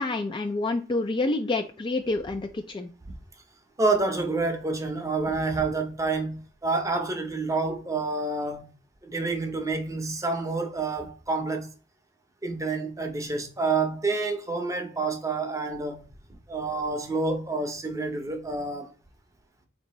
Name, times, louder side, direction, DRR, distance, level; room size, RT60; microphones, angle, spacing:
voice 1, 0.0-2.9, left 2 dB, 25° left, 0.3 m, -28 dB
voice 2, 3.8-8.7 9.0-11.7 12.4-16.0 16.5-18.9, right 3 dB, 15° right, 0.6 m, -28 dB
4.3 x 2.8 x 3.0 m
head